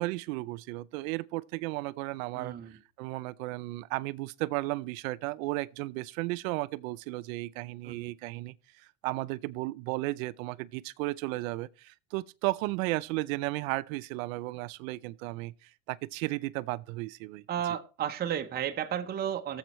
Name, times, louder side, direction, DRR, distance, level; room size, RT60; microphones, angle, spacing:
voice 1, 0.0-2.5 3.0-8.6 9.0-17.4, right 20 dB, 70° right, 0.6 m, -34 dB
voice 2, 2.3-2.8 7.8-8.1 17.5-19.6, right 9 dB, 20° right, 0.8 m, -33 dB
18.0 x 7.3 x 3.0 m
supercardioid pair, 120°, 42 cm